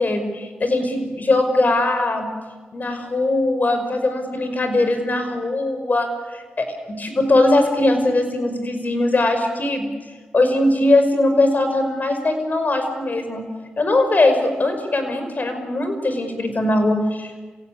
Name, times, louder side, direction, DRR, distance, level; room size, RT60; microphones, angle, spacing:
voice 1, 0.0-2.3 2.7-9.9 10.3-13.5 13.8-17.4, left 2 dB, 50° left, 7 dB, 5.5 m, -20 dB
27.5 x 16.5 x 9.7 m, 1.4 s
supercardioid pair, 45°, 4 cm